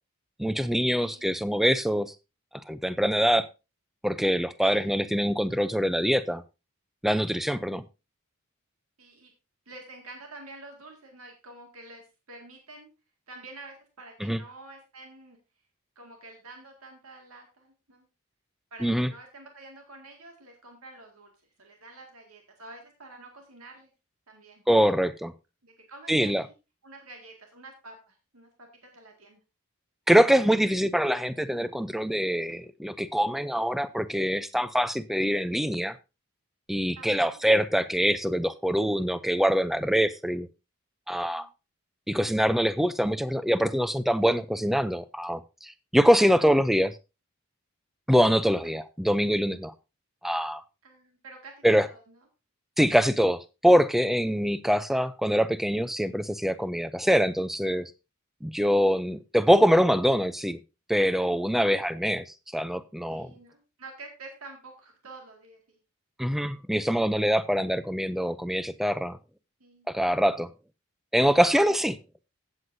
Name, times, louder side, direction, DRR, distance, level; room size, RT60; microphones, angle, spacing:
voice 1, 0.4-2.1 2.7-3.5 4.0-6.4 7.0-7.8 14.2-14.4 18.8-19.1 24.7-25.3 26.1-26.4 30.1-36.0 36.7-40.5 41.1-41.5 42.1-46.9 48.1-49.7 50.2-50.6 51.6-51.9 52.8-57.9 58.4-60.6 60.9-63.3 66.2-69.2 69.9-70.5 71.1-71.9, equal, ahead, 0.4 m, -24 dB
voice 2, 1.0-1.4 4.6-4.9 9.0-9.3 9.7-12.9 13.3-15.4 16.0-18.1 18.7-21.3 21.6-23.9 24.3-24.6 25.6-26.5 26.8-29.4 37.0-37.4 41.1-41.5 46.2-46.5 50.8-52.1 58.9-59.2 63.1-65.8 69.6-69.9 71.2-71.7, right 2 dB, 85° right, 2.0 m, -48 dB
15.5 x 7.9 x 2.6 m
head